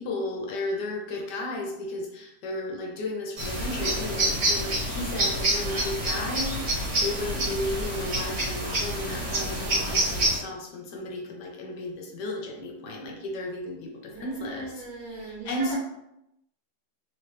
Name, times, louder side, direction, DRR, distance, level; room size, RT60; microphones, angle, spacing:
voice 1, 0.0-15.8, left 2 dB, 75° left, 0 dB, 1.3 m, -34 dB
sound 1, 3.4-10.4, right 1 dB, 45° right, 1.4 m, -27 dB
voice 2, 14.1-15.8, right 2 dB, 85° right, -3 dB, 1.4 m, -39 dB
3.1 x 3.1 x 3.0 m, 0.84 s
omnidirectional pair, 1.9 m